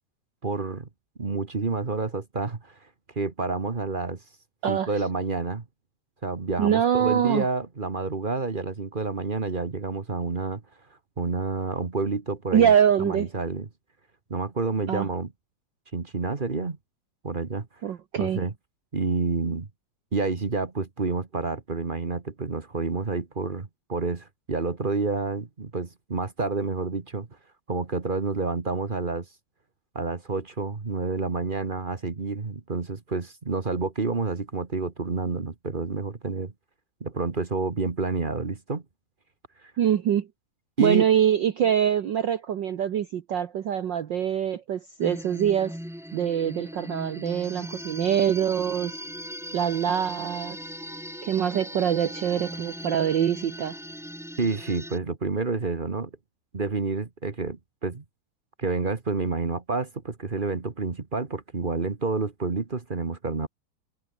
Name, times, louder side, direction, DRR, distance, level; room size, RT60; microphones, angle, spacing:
voice 1, 0.4-0.9 1.2-2.8 3.1-4.2 4.7-5.6 6.2-10.6 11.2-12.7 13.0-13.7 14.3-15.3 15.9-16.8 17.2-17.7 18.1-18.5 18.9-19.7 20.1-27.3 27.7-29.3 29.9-36.5 37.0-38.8 39.6-39.7 40.8-41.1 54.4-56.1 56.5-58.0 58.6-63.5, right 4 dB, 40° right, 0.6 m, -29 dB
voice 2, 6.6-7.5 12.5-13.3 14.9-15.1 17.8-18.4 39.8-40.3 40.8-45.8 46.1-49.0 49.5-50.6 51.2-53.8, right 9 dB, 70° right, 1.1 m, -24 dB
sound 1, 45.0-55.0, equal, ahead, 5.2 m, -38 dB
omnidirectional pair, 3.5 m